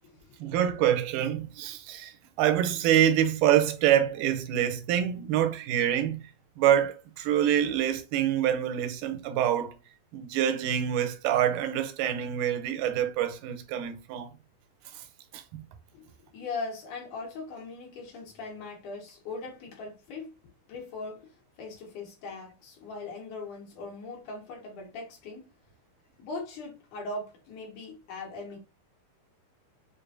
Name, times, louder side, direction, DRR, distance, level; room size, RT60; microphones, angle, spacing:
voice 1, 0.4-2.1 2.4-6.2 6.6-9.7 10.1-14.3 15.3-15.6, right 10 dB, 85° right, 2.2 m, -26 dB
voice 2, 15.9-20.3 20.7-21.3 21.6-25.4 26.2-28.6, left 3 dB, 75° left, 2.9 m, -40 dB
6.6 x 2.5 x 2.5 m
omnidirectional pair, 3.7 m